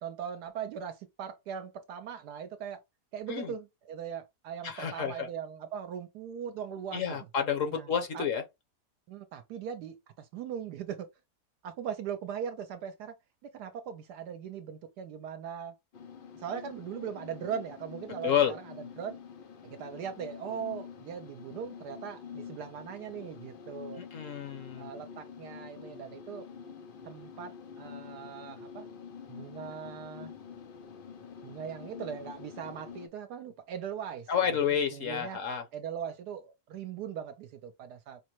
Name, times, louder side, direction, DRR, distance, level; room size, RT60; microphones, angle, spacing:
voice 1, 0.0-2.8 3.1-7.2 7.7-8.3 9.1-11.1 11.6-13.2 13.4-15.8 16.4-19.2 19.6-24.0 24.8-26.5 27.0-28.9 29.3-30.3 31.4-34.3 34.6-35.4 35.7-38.2, right 8 dB, 75° right, 1.1 m, -40 dB
voice 2, 4.6-5.3 6.9-8.4 18.2-18.5 24.0-24.9 34.3-35.6, left 8 dB, 55° left, 1.0 m, -30 dB
sound 1, 15.9-33.1, left 6 dB, 75° left, 0.4 m, -47 dB
5.2 x 2.1 x 2.9 m
omnidirectional pair, 1.8 m